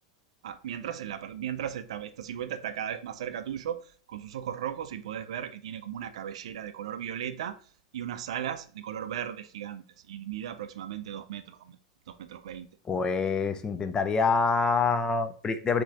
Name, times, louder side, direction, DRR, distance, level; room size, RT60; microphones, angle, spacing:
voice 1, 0.4-7.6 7.9-11.8 12.1-12.7, right 10 dB, 70° right, 0.4 m, -36 dB
voice 2, 12.9-15.8, left 4 dB, 25° left, 0.5 m, -26 dB
7.1 x 2.8 x 2.5 m
hypercardioid pair, 100°, 3 cm